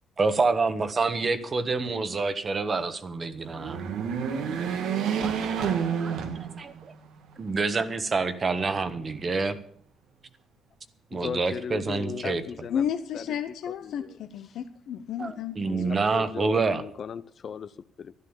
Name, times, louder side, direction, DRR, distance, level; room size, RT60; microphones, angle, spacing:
voice 1, 0.2-3.8 5.2-5.7 6.0-6.1 6.6-6.9 7.4-9.6 11.1-12.4 15.2-16.8, right 4 dB, 35° right, 1.3 m, -27 dB
sound 1, 3.4-7.0 7.5-7.6 8.6-9.4, right 7 dB, 85° right, 1.5 m, -29 dB
voice 2, 11.1-12.9 13.1-13.2 13.7-14.1 15.7-18.1, left 7 dB, 55° left, 0.5 m, -37 dB
voice 3, 12.7-15.8, left 8 dB, 75° left, 0.8 m, -32 dB
12.5 x 11.0 x 7.3 m
cardioid pair, 90°, 0 cm